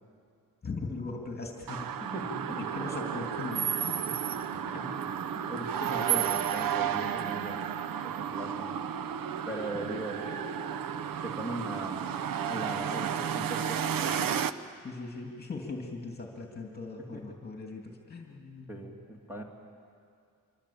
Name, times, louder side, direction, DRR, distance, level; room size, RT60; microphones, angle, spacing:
voice 1, 0.6-2.1 2.6-4.0 4.7-5.0 5.4-5.5 10.2-10.4 14.8-19.0, left 3 dB, 25° left, 0 dB, 2.4 m, -40 dB
sound 1, 1.7-14.5, right 9 dB, 70° right, 0.9 m, -32 dB
voice 2, 2.1-2.6 4.0-4.2 4.7-5.1 5.5-7.6 8.0-8.7 9.4-10.2 11.2-12.1 12.4-14.4 17.0-17.2 18.7-19.4, right 1 dB, 5° right, 0 dB, 2.9 m, -39 dB
26.0 x 24.0 x 8.5 m, 2.4 s
wide cardioid pair, 160°, 35 cm